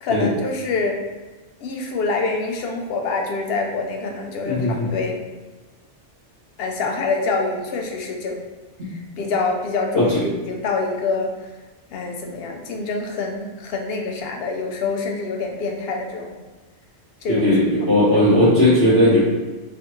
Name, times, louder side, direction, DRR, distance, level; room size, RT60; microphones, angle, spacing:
voice 1, 0.0-1.0 1.6-5.2 6.6-8.4 8.9-11.3 11.9-16.3 17.2-17.5 17.8-18.3, left 3 dB, 65° left, 2 dB, 0.7 m, -26 dB
voice 2, 4.4-4.9 9.9-10.2 17.3-19.2, left 1 dB, 60° right, -10 dB, 1.7 m, -17 dB
3.3 x 2.3 x 3.0 m, 1.2 s
omnidirectional pair, 1.2 m